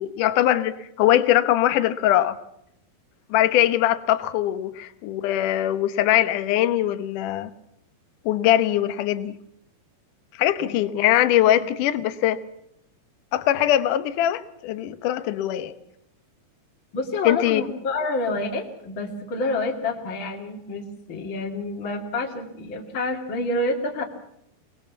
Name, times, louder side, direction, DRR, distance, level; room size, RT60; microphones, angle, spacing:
voice 1, 0.0-2.4 3.3-7.5 8.3-9.4 10.4-12.4 13.3-15.8 17.2-17.6, left 12 dB, 75° left, 12 dB, 1.9 m, -21 dB
voice 2, 10.6-10.9 11.5-11.7 16.9-24.0, left 2 dB, 35° left, 1 dB, 2.3 m, -28 dB
24.0 x 20.0 x 7.3 m, 0.76 s
omnidirectional pair, 5.1 m